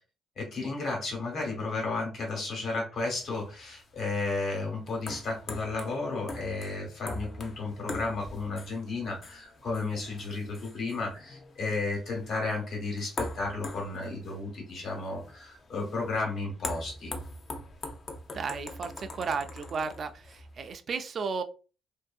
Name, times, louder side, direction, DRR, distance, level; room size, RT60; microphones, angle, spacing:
voice 1, 0.4-17.1, left 3 dB, 65° left, 0 dB, 1.2 m, -33 dB
sound 1, 3.0-20.7, left 2 dB, 45° left, 0.5 m, -43 dB
voice 2, 18.3-21.4, right 5 dB, 50° right, 8 dB, 0.3 m, -34 dB
2.6 x 2.5 x 2.3 m, 0.35 s
cardioid pair, 90°, 0 cm